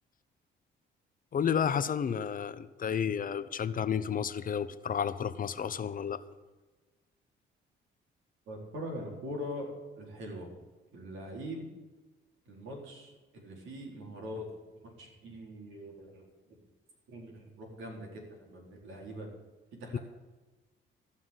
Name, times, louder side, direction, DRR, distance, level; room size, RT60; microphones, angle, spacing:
voice 1, 1.3-6.2 19.9-20.0, left 7 dB, 45° left, 13 dB, 0.8 m, -31 dB
voice 2, 8.5-10.5 10.9-11.7 12.5-14.5 14.8-16.6 17.1-19.3 19.8-20.0, equal, 80° right, -1 dB, 4.2 m, -42 dB
14.5 x 5.8 x 9.7 m, 1.2 s
cardioid pair, 90°, 20 cm